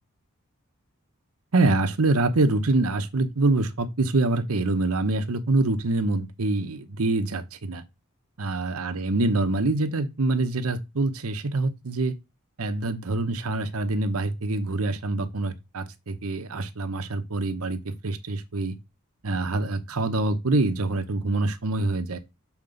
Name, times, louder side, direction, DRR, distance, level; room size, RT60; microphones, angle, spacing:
voice 1, 1.5-7.8 8.4-12.1 12.6-18.8 19.2-22.2, right 2 dB, 80° right, 0.9 m, -25 dB
7.3 x 4.4 x 3.9 m
head